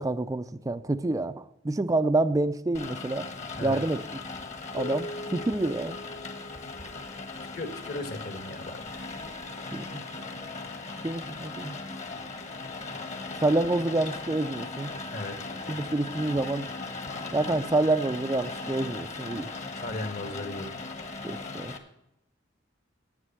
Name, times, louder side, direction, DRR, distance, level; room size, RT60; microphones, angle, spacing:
voice 1, 0.0-3.3 3.6-4.0 4.7-6.0 9.7-10.4 11.0-11.8 13.4-14.9 15.7-16.7 17.3-19.5 21.2-21.7, right 2 dB, 20° right, 10 dB, 0.4 m, -28 dB
Rain, 2.7-21.8, left 3 dB, 40° left, 1.4 m, -38 dB
Keyboard (musical), 4.8-7.7, left 1 dB, 85° left, 1.6 m, -42 dB
voice 2, 7.5-8.8 15.1-15.4 19.8-20.7, left 2 dB, 55° left, 7 dB, 1.7 m, -36 dB
9.8 x 8.8 x 7.4 m, 0.84 s
head